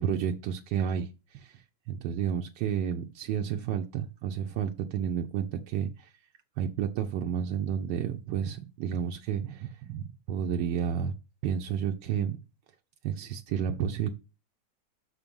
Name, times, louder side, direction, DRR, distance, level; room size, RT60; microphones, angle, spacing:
voice 1, 0.0-1.5 1.9-6.1 6.6-11.1 11.4-12.4 13.0-14.1, right 8 dB, 85° right, 3 dB, 1.3 m, -31 dB
5.9 x 4.3 x 5.2 m, 0.29 s
omnidirectional pair, 1.9 m